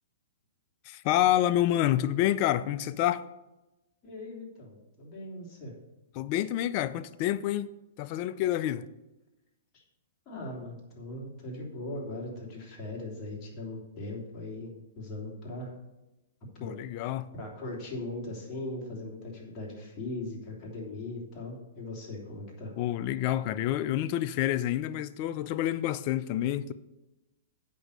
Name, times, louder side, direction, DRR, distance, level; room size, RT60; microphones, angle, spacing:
voice 1, 0.8-3.3 6.1-7.7 8.0-8.8 16.6-17.3 22.8-26.7, left 13 dB, 40° left, 0.5 m, -28 dB
voice 2, 4.0-5.7 9.7-9.8 10.2-14.7 15.0-15.7 16.5-16.7 17.3-22.7, left 2 dB, 25° left, 3.3 m, -39 dB
8.4 x 6.0 x 6.6 m
hypercardioid pair, 140°, 0 cm